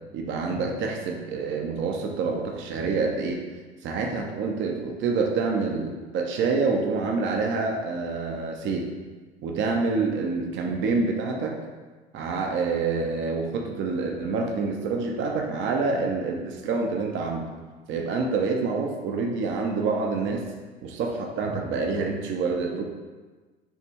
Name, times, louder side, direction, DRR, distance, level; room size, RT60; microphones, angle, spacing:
voice 1, 0.1-3.4 3.8-8.9 9.4-11.6 12.1-17.5 17.9-20.5 20.8-22.8, right 4 dB, 35° right, 2 dB, 0.8 m, -27 dB
7.1 x 3.4 x 4.5 m, 1.3 s
figure-of-eight pair, 75°, 32 cm